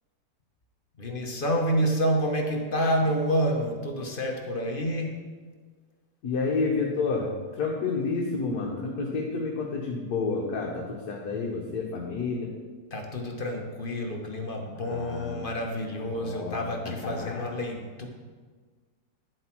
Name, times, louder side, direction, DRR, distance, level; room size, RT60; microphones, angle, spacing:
voice 1, 0.9-5.1 12.9-18.1, equal, 35° left, 1 dB, 1.0 m, -28 dB
voice 2, 6.2-12.5 14.8-15.5 16.1-17.5, left 4 dB, 60° left, -1 dB, 1.5 m, -30 dB
10.5 x 7.7 x 4.5 m, 1.5 s
omnidirectional pair, 1.9 m